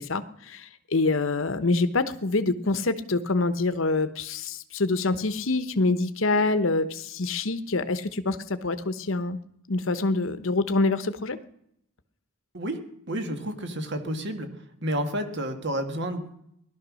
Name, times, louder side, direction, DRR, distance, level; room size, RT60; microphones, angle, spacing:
voice 1, 0.0-9.4 9.7-11.4, left 3 dB, 70° left, 11 dB, 1.0 m, -26 dB
voice 2, 13.1-14.5 14.8-16.4, right 1 dB, 55° right, 7 dB, 2.0 m, -30 dB
18.5 x 12.5 x 6.3 m, 0.75 s
head